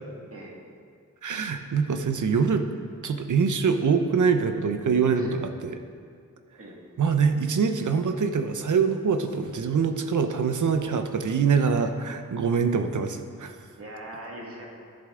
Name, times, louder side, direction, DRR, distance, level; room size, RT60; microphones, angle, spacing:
voice 1, 1.2-2.7 3.0-5.8 7.0-13.6, right 5 dB, 70° right, 7 dB, 0.8 m, -24 dB
voice 2, 13.8-14.7, right 1 dB, 45° right, -3 dB, 2.0 m, -41 dB
14.0 x 7.8 x 3.8 m, 2.2 s
wide cardioid pair, 145°, 31 cm